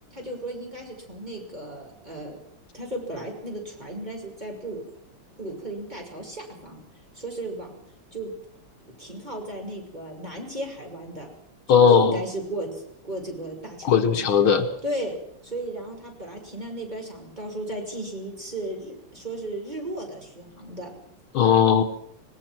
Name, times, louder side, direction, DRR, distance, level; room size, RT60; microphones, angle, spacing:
voice 1, 0.1-2.4 2.7-4.8 5.4-6.8 7.1-7.8 8.1-8.3 9.0-11.3 11.7-14.3 14.8-15.2 15.4-20.9, right 1 dB, 20° right, 0 dB, 6.1 m, -35 dB
voice 2, 11.7-12.2 13.8-14.7 21.3-21.8, left 7 dB, 70° left, 7 dB, 2.1 m, -18 dB
25.0 x 20.5 x 6.1 m, 0.65 s
omnidirectional pair, 2.4 m